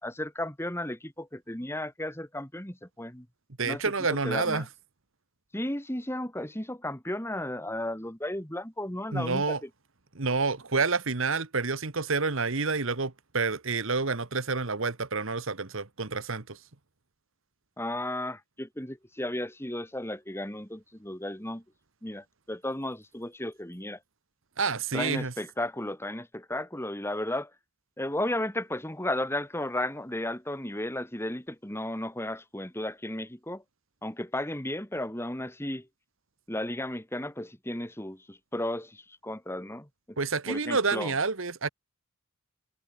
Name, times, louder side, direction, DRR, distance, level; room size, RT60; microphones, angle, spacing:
voice 1, 0.0-3.3 3.6-3.8 4.2-4.7 5.5-9.7 17.8-21.6 22.0-24.0 24.9-27.5 28.0-33.6 34.0-35.9 36.5-40.2 40.5-41.1, left 1 dB, 10° left, 2.6 m, -34 dB
voice 2, 3.6-4.6 9.1-9.6 10.1-16.6 24.6-25.3 40.2-41.7, right 4 dB, 60° right, 1.4 m, -28 dB
head